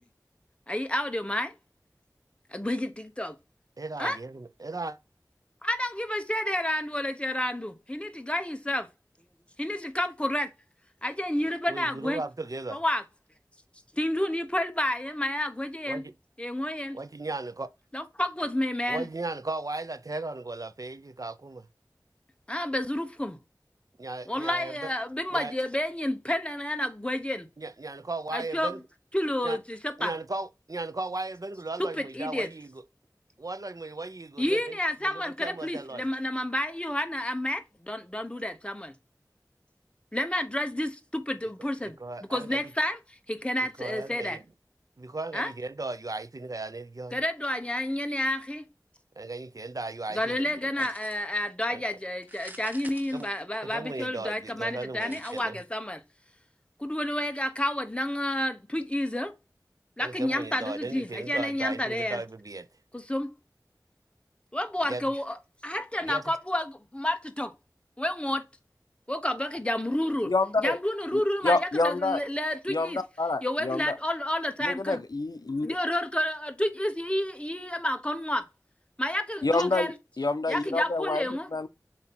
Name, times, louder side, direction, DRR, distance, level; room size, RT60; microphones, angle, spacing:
voice 1, 0.7-1.5 2.5-3.3 4.0-4.2 5.6-8.9 9.6-10.5 11.0-12.2 12.7-13.0 13.9-16.0 16.4-17.0 17.9-19.1 22.5-23.4 24.3-27.5 28.3-28.7 29.1-30.1 31.8-32.5 34.4-38.9 40.1-42.0 42.3-44.4 45.3-45.5 47.1-48.6 50.1-56.0 56.8-59.3 60.0-62.2 62.9-63.3 64.5-65.4 65.6-67.5 68.0-68.4 69.1-73.0 73.4-75.0 75.6-78.4 79.0-79.9 80.5-81.5, left 1 dB, 15° left, 1.0 m, -30 dB
voice 2, 3.8-5.0 11.7-12.8 15.9-16.1 16.9-17.7 18.9-21.7 24.0-24.9 25.3-25.5 27.6-28.8 29.4-29.6 30.0-32.7 33.4-34.8 35.0-36.0 41.8-42.7 43.8-44.4 45.0-47.2 49.2-50.4 50.8-50.9 51.7-51.8 53.1-53.3 53.6-55.6 60.0-62.7 64.9-65.0 66.0-66.2, right 2 dB, 55° right, 0.6 m, -36 dB
sound 1, 50.8-51.4 52.2-53.9 55.0-55.4, right 1 dB, 25° right, 1.2 m, -48 dB
voice 3, 70.3-70.8 71.1-72.2 72.7-73.9 74.6-75.7 79.4-79.9 80.2-81.2 81.5-81.7, left 3 dB, 70° left, 0.6 m, -27 dB
7.2 x 2.8 x 5.9 m
wide cardioid pair, 40°, 7 cm